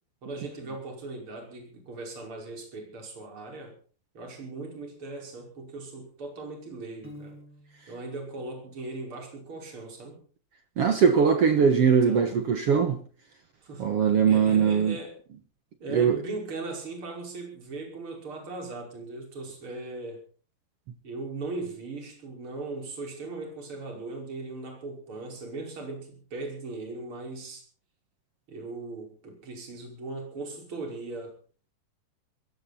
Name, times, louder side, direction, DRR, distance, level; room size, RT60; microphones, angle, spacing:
voice 1, 0.2-3.7 4.1-7.4 7.9-10.2 12.0-12.3 13.6-13.9 14.3-15.1 15.8-20.2 21.0-27.6 28.5-31.4, right 3 dB, 30° right, 6.0 m, -38 dB
Piano, 7.0-8.0, equal, 5° right, 4.7 m, -47 dB
voice 2, 10.8-13.0 13.8-15.0 15.9-16.2, right 6 dB, 65° right, 1.5 m, -21 dB
21.5 x 15.5 x 4.3 m
omnidirectional pair, 4.5 m